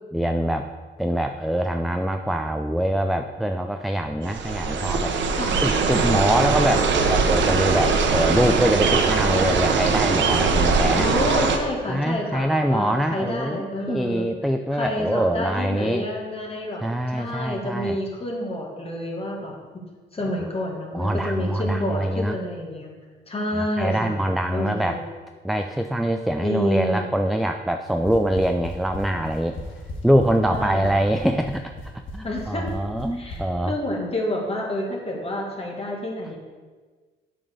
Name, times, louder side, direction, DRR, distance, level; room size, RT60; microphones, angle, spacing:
voice 1, 0.1-0.7 1.0-5.2 5.6-11.1 11.9-16.1 16.8-18.0 20.2-20.3 20.9-22.4 23.5-25.0 25.4-29.6 30.0-33.7, right 1 dB, ahead, 6 dB, 0.3 m, -24 dB
sound 1, 4.2-11.6, right 4 dB, 65° right, 0.9 m, -21 dB
voice 2, 10.9-14.3 14.7-16.8 17.1-19.6 20.1-22.9 23.3-24.2 24.5-25.0 26.4-27.1 30.5-31.0 32.2-32.6 33.1-36.4, left 1 dB, 30° left, 0 dB, 1.9 m, -28 dB
sound 2, 27.9-33.4, left 2 dB, 70° left, 1.8 m, -36 dB
7.6 x 4.1 x 6.5 m, 1.4 s
cardioid pair, 90°, 20 cm